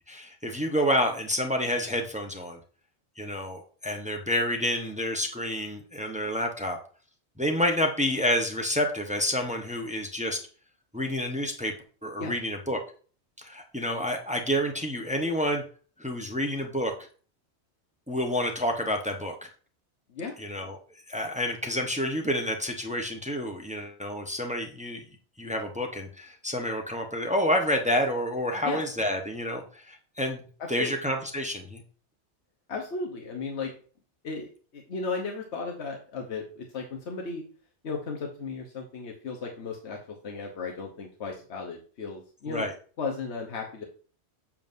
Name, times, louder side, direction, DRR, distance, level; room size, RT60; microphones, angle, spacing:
voice 1, 0.1-2.6 3.2-6.8 7.4-10.4 10.9-11.7 12.0-12.8 13.4-15.6 16.0-16.9 18.1-19.5 20.4-20.8 21.1-25.0 25.4-30.4 30.7-31.8 42.5-42.7, equal, 5° right, 3 dB, 0.8 m, -29 dB
voice 2, 30.6-31.0 32.7-33.7 34.2-37.4 37.8-42.7 43.0-43.8, left 4 dB, 75° left, 0 dB, 1.3 m, -35 dB
7.2 x 7.1 x 2.6 m, 0.41 s
omnidirectional pair, 1.2 m